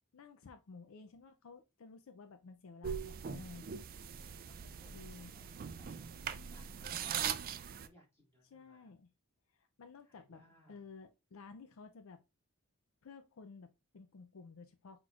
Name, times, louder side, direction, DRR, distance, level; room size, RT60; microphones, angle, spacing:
voice 1, 0.1-3.7 4.9-5.3 8.5-9.1 9.5-10.4 10.7-12.2 13.0-15.0, left 4 dB, 65° left, 0.5 m, -54 dB
sound 1, 2.8-7.9, right 7 dB, 40° right, 0.3 m, -41 dB
voice 2, 4.2-5.9 6.2-9.0 10.0-10.8, left 1 dB, 10° left, 2.0 m, -66 dB
5.8 x 3.1 x 2.4 m
head